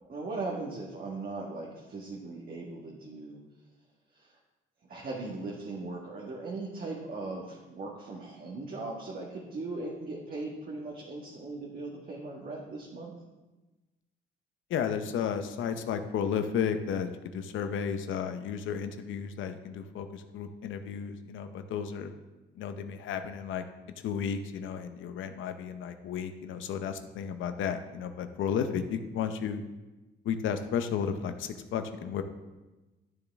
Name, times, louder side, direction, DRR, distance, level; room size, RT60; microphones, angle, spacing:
voice 1, 0.0-3.4 4.1-4.3 4.9-13.1, right 3 dB, 45° right, -3 dB, 1.7 m, -39 dB
voice 2, 14.7-22.1 22.6-23.6 24.0-29.6 30.2-32.2, left 7 dB, 80° left, 8 dB, 0.8 m, -33 dB
12.5 x 6.9 x 3.5 m, 1.1 s
cardioid pair, 90°, 20 cm